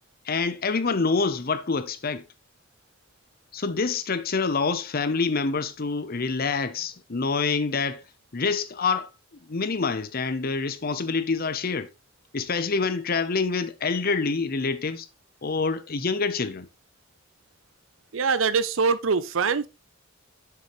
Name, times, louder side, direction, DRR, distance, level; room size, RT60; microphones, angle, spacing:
voice 1, 0.3-2.2 3.5-8.0 8.3-9.1 9.5-11.9 12.3-15.1 15.4-16.7, left 4 dB, 45° left, 0.7 m, -26 dB
voice 2, 18.1-19.7, right 5 dB, 70° right, 0.7 m, -23 dB
7.0 x 6.7 x 3.1 m
head